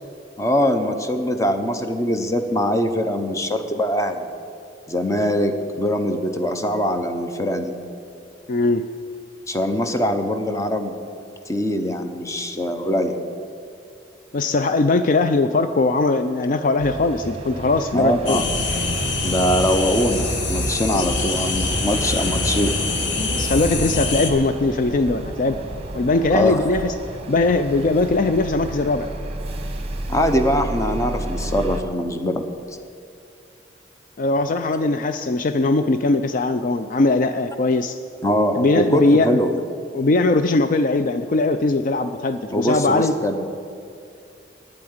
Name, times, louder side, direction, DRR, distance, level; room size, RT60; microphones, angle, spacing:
voice 1, 0.4-4.3 4.9-7.7 9.5-10.9 11.5-13.1 17.9-18.5 19.2-22.8 26.3-26.6 30.1-32.5 38.2-39.5 42.5-43.5, equal, 20° left, 6 dB, 0.9 m, -22 dB
voice 2, 8.5-8.8 14.3-18.4 20.9-21.0 23.3-25.6 25.9-26.9 27.3-29.1 34.2-38.0 38.5-39.4 39.9-43.2, left 2 dB, 50° left, 9 dB, 0.4 m, -20 dB
sound 1, 16.8-31.8, right 1 dB, 35° right, 1.0 m, -32 dB
sound 2, 18.3-24.3, left 3 dB, 85° left, 1.4 m, -25 dB
9.7 x 8.5 x 9.4 m, 2.5 s
head